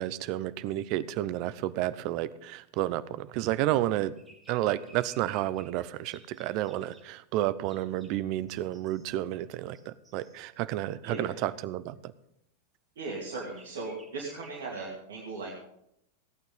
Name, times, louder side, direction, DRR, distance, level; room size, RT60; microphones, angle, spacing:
voice 1, 0.0-4.1 4.5-12.1, right 14 dB, 45° right, 16 dB, 0.6 m, -31 dB
sound 1, 0.7-0.8 4.2-5.8 6.1-7.1 7.6-8.2 8.5-9.2 9.7-10.5 13.0-14.9, right 1 dB, 5° right, 4.1 m, -58 dB
voice 2, 11.0-11.4 13.0-15.6, right 3 dB, 60° right, -3 dB, 2.5 m, -38 dB
16.5 x 9.1 x 5.5 m, 0.77 s
figure-of-eight pair, 90°, 0 cm